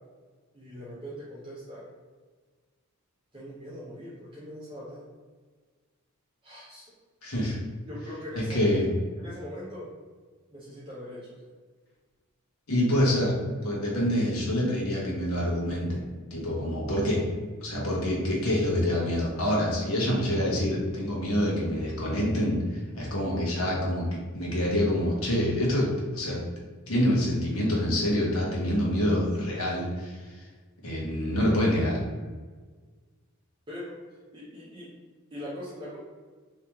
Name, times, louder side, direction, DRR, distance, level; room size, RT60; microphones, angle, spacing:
voice 1, 0.5-1.8 3.3-5.0 6.4-6.8 7.9-8.8 9.2-9.9 10.5-11.5 33.7-34.0 34.3-34.9 35.3-36.0, equal, 20° right, -8 dB, 0.6 m, -41 dB
voice 2, 7.2-7.6 8.5-8.8 12.7-13.3 13.6-16.0 16.3-17.2 17.6-25.9 26.1-26.4 26.9-30.4 30.8-32.0, equal, 70° left, -4 dB, 1.1 m, -26 dB
3.0 x 2.8 x 3.4 m, 1.4 s
head